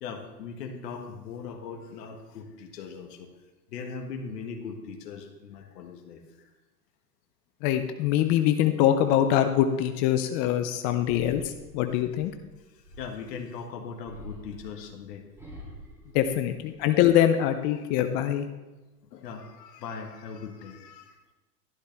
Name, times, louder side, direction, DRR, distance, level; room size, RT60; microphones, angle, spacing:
voice 1, 0.0-3.3 3.7-6.5 13.0-15.2 19.1-21.2, left 5 dB, 75° left, 3 dB, 1.7 m, -39 dB
voice 2, 7.6-12.3 16.1-18.5, left 11 dB, 25° left, 8 dB, 0.3 m, -24 dB
sound 1, 11.0-13.4 14.0-17.1 17.5-18.1, equal, 5° right, 3.1 m, -47 dB
12.5 x 11.5 x 3.4 m, 1.1 s
hypercardioid pair, 120°, 49 cm